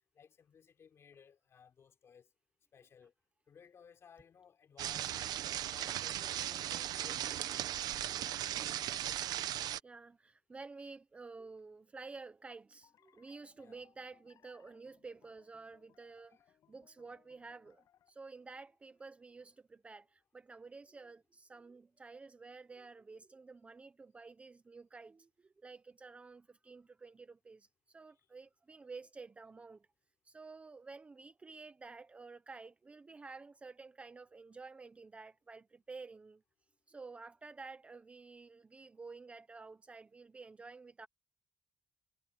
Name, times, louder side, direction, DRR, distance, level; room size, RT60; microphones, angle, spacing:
voice 1, 0.1-2.3 2.7-3.1 3.5-5.1 5.6-8.6 13.6-13.9 16.3-16.4 28.1-28.3, left 7 dB, 40° left, 3.5 m, -60 dB
sound 1, 4.8-9.8, right 12 dB, 85° right, 0.8 m, -37 dB
voice 2, 9.8-16.4 16.7-29.9 30.3-36.4 36.9-41.1, right 4 dB, 20° right, 0.5 m, -51 dB
sound 2, 12.8-18.1, left 10 dB, 65° left, 5.1 m, -70 dB
cardioid pair, 175°, 7 cm